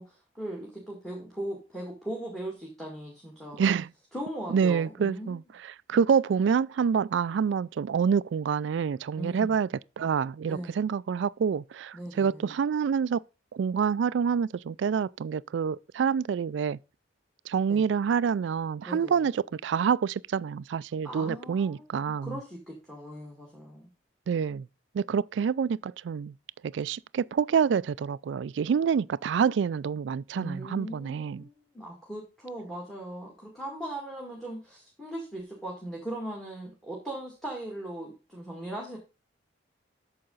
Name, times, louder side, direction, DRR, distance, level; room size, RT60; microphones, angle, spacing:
voice 1, 0.0-3.6 4.1-5.4 9.1-9.6 10.4-10.8 11.9-12.5 17.7-17.9 18.9-19.3 21.0-23.9 30.3-39.0, right 1 dB, 5° left, 1.9 m, -39 dB
voice 2, 3.6-3.9 4.5-5.4 5.9-9.7 10.0-13.2 13.5-16.8 17.5-22.4 24.3-24.7 24.9-26.3 26.6-31.5, right 6 dB, 75° right, 0.3 m, -27 dB
8.7 x 6.6 x 3.9 m
head